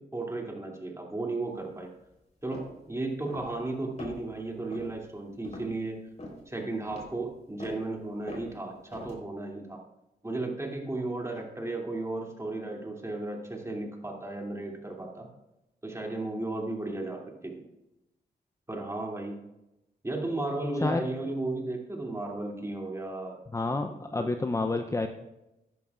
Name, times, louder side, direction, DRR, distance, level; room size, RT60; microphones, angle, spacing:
voice 1, 0.0-1.9 2.4-6.0 6.5-9.8 10.2-15.3 15.8-17.6 18.7-19.4 20.0-23.4 24.2-24.3, right 2 dB, 15° right, 0 dB, 2.7 m, -34 dB
sound 1, 2.5-2.7 3.3-3.7 4.0-4.4 4.7-5.0 5.4-5.7 6.2-6.4 6.9-7.1 7.6-7.8 8.3-8.5 8.9-9.2, left 1 dB, 40° left, 3.8 m, -42 dB
voice 2, 23.5-25.1, left 2 dB, 15° left, 6 dB, 0.6 m, -29 dB
14.0 x 10.5 x 2.5 m, 0.93 s
cardioid pair, 70°, 18 cm